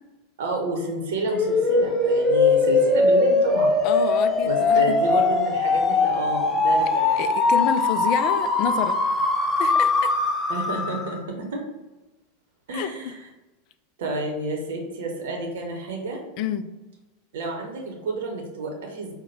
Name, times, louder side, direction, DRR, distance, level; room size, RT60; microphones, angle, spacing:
voice 1, 0.4-3.8 4.4-7.2 10.5-11.6 12.7-13.2 14.0-16.2 17.3-19.1, right 2 dB, 65° right, 1 dB, 0.8 m, -30 dB
sound 1, 1.3-11.2, left 3 dB, 20° left, 0.9 m, -21 dB
voice 2, 3.8-5.0 7.2-9.0 9.6-10.1 12.7-13.1 16.4-16.7, left 8 dB, 50° left, 11 dB, 0.3 m, -28 dB
4.6 x 2.1 x 4.1 m, 1.1 s
figure-of-eight pair, 85°, 0 cm